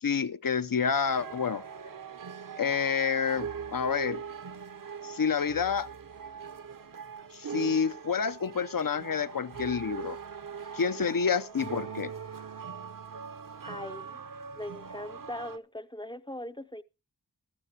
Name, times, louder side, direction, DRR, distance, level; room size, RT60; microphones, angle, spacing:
voice 1, 0.0-1.6 2.6-4.2 5.0-5.9 7.3-10.2 10.7-12.1, left 6 dB, 55° left, 0.6 m, -28 dB
sound 1, 1.1-15.6, right 6 dB, 55° right, 0.7 m, -41 dB
voice 2, 13.6-14.2 14.6-16.8, left 1 dB, 10° left, 0.5 m, -40 dB
16.0 x 12.0 x 2.8 m
wide cardioid pair, 45°, 39 cm